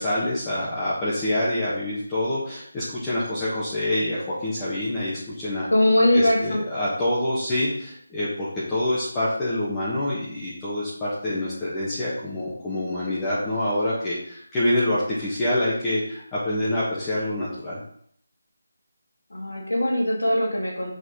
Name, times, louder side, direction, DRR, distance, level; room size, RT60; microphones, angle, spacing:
voice 1, 0.0-5.7 6.1-17.8, left 1 dB, 15° left, -10 dB, 1.4 m, -26 dB
voice 2, 5.7-6.6 19.3-20.9, left 1 dB, 70° left, -2 dB, 2.5 m, -21 dB
6.2 x 5.3 x 3.9 m, 0.65 s
figure-of-eight pair, 155°, 0 cm